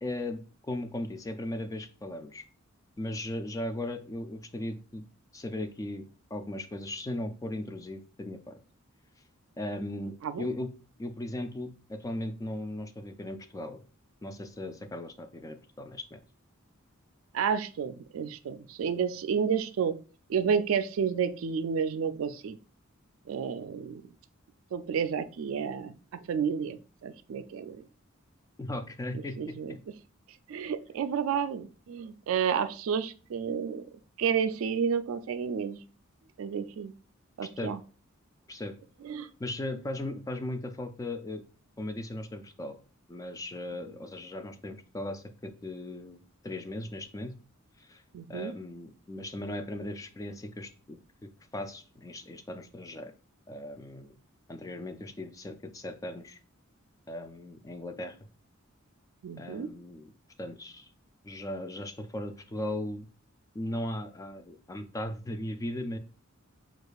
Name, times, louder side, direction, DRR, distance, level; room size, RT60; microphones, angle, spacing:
voice 1, 0.0-2.4 3.0-5.0 5.3-6.0 6.3-8.6 9.6-10.7 11.0-13.8 14.2-16.2 28.6-29.8 37.4-37.7 38.5-38.7 39.4-41.4 41.8-42.8 43.1-46.2 46.4-47.3 47.8-48.0 48.3-51.0 51.5-53.1 53.5-54.1 54.5-56.4 57.1-58.2 59.4-60.1 60.4-60.9 61.2-63.1 63.5-66.0, left 1 dB, 15° left, 8 dB, 0.3 m, -37 dB
voice 2, 17.3-20.0 20.3-22.6 23.3-24.0 24.7-27.8 29.1-29.7 30.5-33.8 34.2-35.8 36.4-36.9 37.4-37.8 39.0-39.3 48.1-48.5 59.2-59.7, right 7 dB, 70° right, 11 dB, 0.3 m, -31 dB
6.4 x 2.4 x 2.3 m, 0.37 s
head